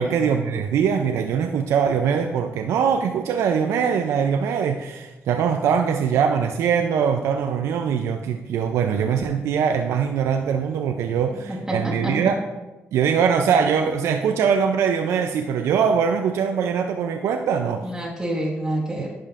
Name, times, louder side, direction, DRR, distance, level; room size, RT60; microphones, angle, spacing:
voice 1, 0.0-12.4 12.9-17.9, right 7 dB, 80° right, 5 dB, 0.4 m, -22 dB
voice 2, 11.5-12.2 17.8-19.1, right 1 dB, 10° right, -5 dB, 1.3 m, -28 dB
11.0 x 5.1 x 2.5 m, 1.1 s
cardioid pair, 80°, 5 cm